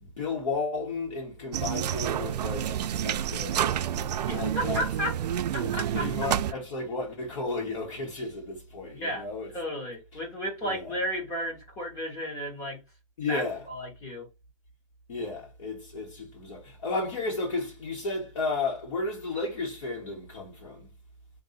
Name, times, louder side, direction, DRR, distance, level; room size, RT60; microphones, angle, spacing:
voice 1, 0.0-2.8 3.0-3.8 4.3-4.8 5.6-9.5 10.6-11.0 13.2-13.6 15.1-20.9, left 3 dB, 50° left, 1.3 m, -33 dB
sound 1, 1.5-6.5, right 10 dB, 90° right, 0.4 m, -29 dB
voice 2, 4.3-5.2 5.5-6.3 8.9-9.3 9.5-12.8 13.3-14.3, equal, 15° left, 1.0 m, -33 dB
3.8 x 2.6 x 4.1 m
hypercardioid pair, 175°, 20 cm